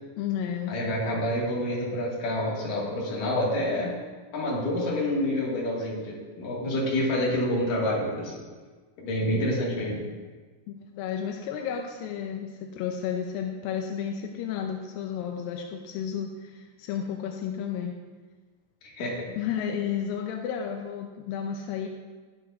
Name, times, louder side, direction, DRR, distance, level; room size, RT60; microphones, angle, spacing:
voice 1, 0.2-0.8 9.2-9.5 10.7-18.0 19.4-21.9, left 8 dB, 90° left, 2 dB, 2.4 m, -32 dB
voice 2, 0.7-3.9 4.3-8.5 9.0-10.1 18.9-19.3, left 1 dB, 70° left, -4 dB, 3.5 m, -28 dB
19.5 x 6.9 x 2.5 m, 1.4 s
omnidirectional pair, 4.1 m